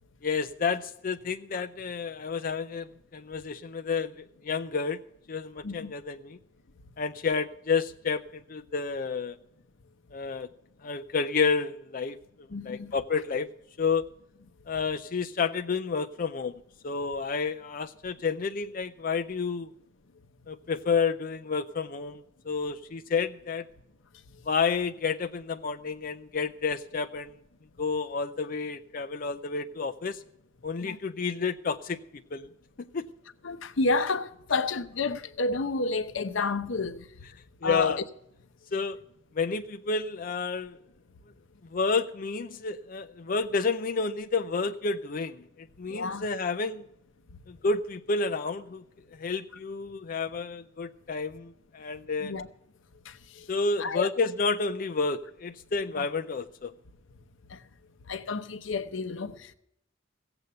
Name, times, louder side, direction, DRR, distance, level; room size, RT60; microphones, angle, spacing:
voice 1, 0.2-5.0 5.3-6.4 7.0-9.4 10.1-10.5 10.8-12.2 12.6-13.5 13.8-14.1 14.7-19.7 20.5-22.2 22.4-23.7 24.5-27.3 27.8-30.2 30.6-32.0 32.3-32.5 32.8-33.1 37.6-38.0 38.7-39.0 39.3-40.8 41.7-46.8 47.5-48.8 49.1-52.3 53.5-56.7, left 4 dB, 45° left, 0.5 m, -30 dB
voice 2, 12.5-12.9 30.8-31.0 33.4-37.0 37.6-38.0 45.9-46.2 52.2-52.5 53.1-53.4 53.8-54.1 57.5-57.6 58.1-59.5, left 3 dB, 80° left, 0.8 m, -30 dB
16.5 x 7.9 x 6.8 m
head